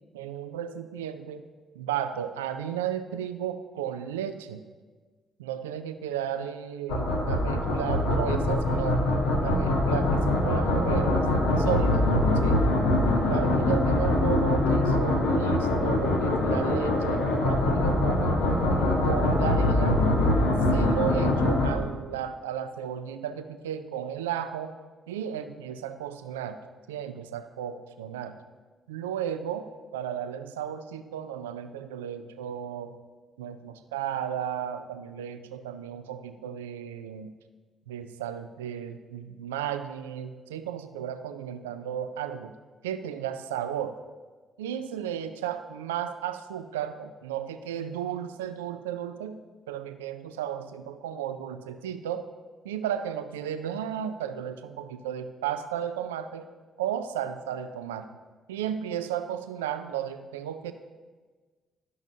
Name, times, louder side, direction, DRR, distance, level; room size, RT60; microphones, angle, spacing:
voice 1, 0.1-1.5 1.8-4.6 5.4-9.1 9.4-11.3 11.6-12.1 12.4-12.6 13.2-18.4 19.0-20.0 20.7-24.7 25.1-26.6 26.9-28.3 28.9-32.9 33.4-37.3 37.9-42.5 42.8-44.0 44.6-52.3 52.6-56.5 56.8-58.1 58.5-60.7, right 9 dB, 85° right, 9 dB, 0.3 m, -34 dB
sound 1, 6.9-21.7, left 1 dB, 75° left, 1.1 m, -23 dB
12.0 x 5.9 x 2.7 m, 1.4 s
hypercardioid pair, 45°, 0 cm